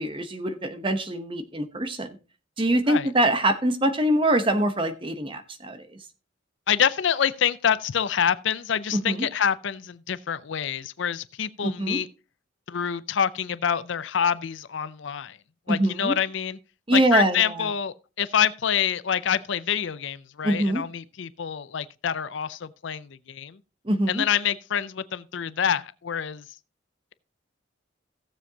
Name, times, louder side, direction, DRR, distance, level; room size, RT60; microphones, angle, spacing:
voice 1, 0.0-2.1 2.6-5.8 8.9-9.3 11.6-12.0 15.7-16.2 16.9-17.7 20.4-20.8 23.9-24.2, right 1 dB, 25° right, 0.9 m, -24 dB
voice 2, 6.7-12.1 12.7-15.4 15.7-16.6 16.9-23.6 24.1-26.4, left 8 dB, 65° left, 0.5 m, -26 dB
16.5 x 7.2 x 2.8 m
head